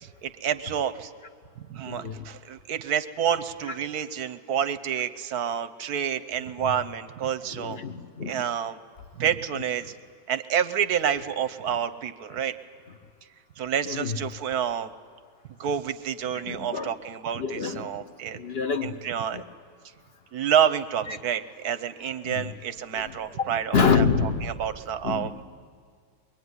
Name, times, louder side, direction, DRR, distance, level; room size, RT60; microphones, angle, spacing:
voice 1, 0.0-1.1 1.6-7.8 8.3-8.8 9.2-9.9 10.3-12.6 13.6-14.9 15.6-18.4 18.8-19.4 20.3-25.4, right 8 dB, 60° right, 11 dB, 1.2 m, -28 dB
voice 2, 1.8-2.3 7.5-8.4 13.9-14.2 16.4-16.9 17.4-17.9 18.3-19.0 19.3-19.4 21.1-21.2 22.2-22.5 22.9-23.1 23.4-23.5 23.7-24.5 25.0-25.3, left 5 dB, 45° left, 6 dB, 0.9 m, -26 dB
23.0 x 22.5 x 9.6 m, 2.1 s
omnidirectional pair, 2.2 m